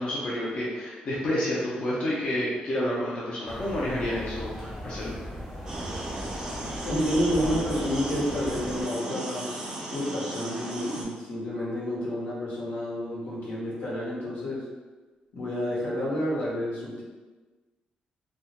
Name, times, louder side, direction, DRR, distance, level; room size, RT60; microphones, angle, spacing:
voice 1, 0.0-5.1, left 1 dB, 40° left, -7 dB, 0.4 m, -29 dB
sound 1, 3.5-8.9, equal, 5° left, 0.7 m, -38 dB
sound 2, 5.7-11.0, right 1 dB, 25° right, 0.3 m, -36 dB
voice 2, 6.8-14.6 15.3-17.0, equal, 75° left, -6 dB, 0.8 m, -30 dB
2.2 x 2.1 x 2.8 m, 1.3 s
wide cardioid pair, 180°, 3 cm